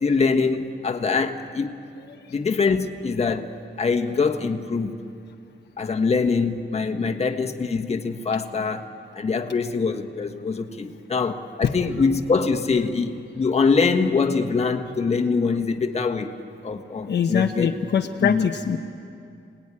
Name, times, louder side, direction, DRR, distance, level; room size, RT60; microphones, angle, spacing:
voice 1, 0.0-1.8 2.3-5.0 5.8-16.3 16.6-17.7 18.2-18.5, left 4 dB, 30° left, 5 dB, 1.4 m, -24 dB
voice 2, 17.1-18.8, left 7 dB, 60° left, 4 dB, 1.0 m, -22 dB
29.5 x 19.5 x 9.8 m, 2.5 s
wide cardioid pair, 175°, 20 cm